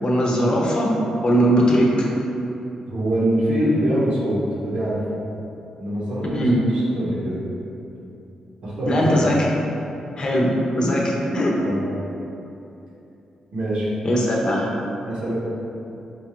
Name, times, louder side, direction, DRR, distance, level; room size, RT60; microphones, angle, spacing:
voice 1, 0.0-1.0 1.2-2.1 6.3-6.6 8.9-9.4 10.2-11.5 14.0-14.7, equal, 45° left, -2 dB, 0.7 m, -19 dB
voice 2, 2.9-5.0 5.8-7.4 8.6-9.2 11.6-11.8 13.5-13.9 15.0-15.4, right 1 dB, 75° right, -7 dB, 1.1 m, -24 dB
4.4 x 2.4 x 2.9 m, 2.9 s
cardioid pair, 75°, 2 cm